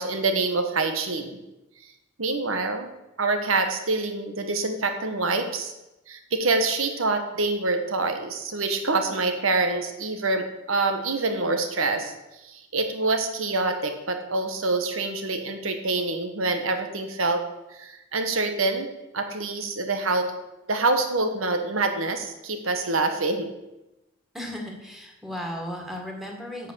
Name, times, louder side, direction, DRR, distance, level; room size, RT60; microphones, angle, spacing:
voice 1, 0.0-1.4 2.2-2.9 3.2-5.7 6.1-12.1 12.4-17.4 17.8-18.9 19.1-20.3 20.7-23.5, right 3 dB, 90° right, 6 dB, 1.4 m, -26 dB
voice 2, 24.3-26.7, equal, ahead, 0 dB, 1.9 m, -35 dB
8.3 x 8.0 x 6.4 m, 0.96 s
head